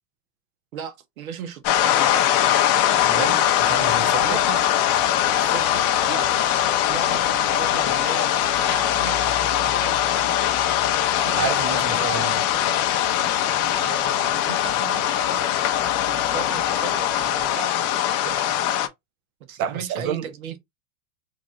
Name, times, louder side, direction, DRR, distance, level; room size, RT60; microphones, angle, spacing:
voice 1, 0.7-2.2 4.1-4.8 5.3-6.3 6.9-10.1 11.1-12.3 13.7-15.5 16.1-18.6 19.4-20.6, right 7 dB, 85° right, 1.1 m, -37 dB
sound 1, 1.6-18.9, left 11 dB, 40° left, 0.6 m, -21 dB
sound 2, 3.0-17.5, left 5 dB, 5° left, 1.1 m, -42 dB
voice 2, 3.0-4.4 11.4-12.4 19.6-20.3, right 7 dB, 35° right, 0.5 m, -29 dB
3.1 x 2.7 x 3.7 m
supercardioid pair, 135°, 41 cm